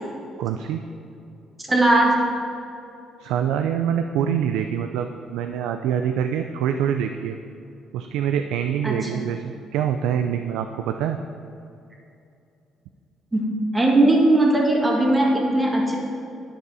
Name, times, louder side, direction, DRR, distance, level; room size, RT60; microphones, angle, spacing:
voice 1, 0.4-0.8 3.2-7.4 7.9-11.2, right 9 dB, 90° right, 6 dB, 0.3 m, -25 dB
voice 2, 1.7-2.1 8.8-9.2 13.3-13.5 13.7-16.0, right 1 dB, 15° right, -2 dB, 1.7 m, -18 dB
10.5 x 4.8 x 4.8 m, 2.6 s
cardioid pair, 100°, 0 cm